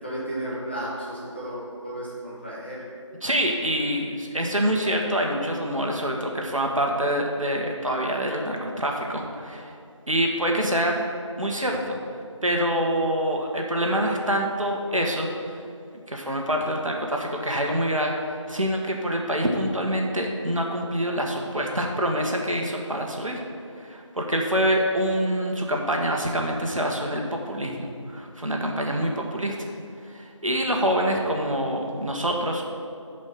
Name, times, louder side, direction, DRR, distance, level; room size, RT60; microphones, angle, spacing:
voice 1, 0.0-2.8, right 1 dB, 20° left, -8 dB, 1.5 m, -33 dB
voice 2, 3.2-9.7 10.1-11.0 11.4-12.0 12.4-15.6 16.1-23.4 23.8-29.7 30.1-32.6, equal, 90° right, 1 dB, 1.7 m, -26 dB
11.0 x 5.3 x 5.9 m, 2.5 s
figure-of-eight pair, 180°, 16 cm